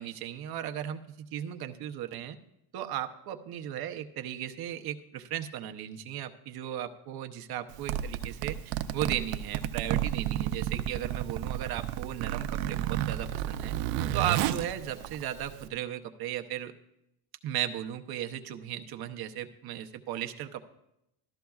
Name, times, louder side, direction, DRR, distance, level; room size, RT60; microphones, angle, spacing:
voice 1, 0.0-2.4 2.7-13.8 14.1-16.7 17.4-20.7, right 11 dB, 50° right, 6 dB, 0.8 m, -36 dB
Zipper (clothing), 7.7-15.7, right 12 dB, 85° right, 0.7 m, -32 dB
14.0 x 13.0 x 2.4 m, 0.84 s
cardioid pair, 160°, 48 cm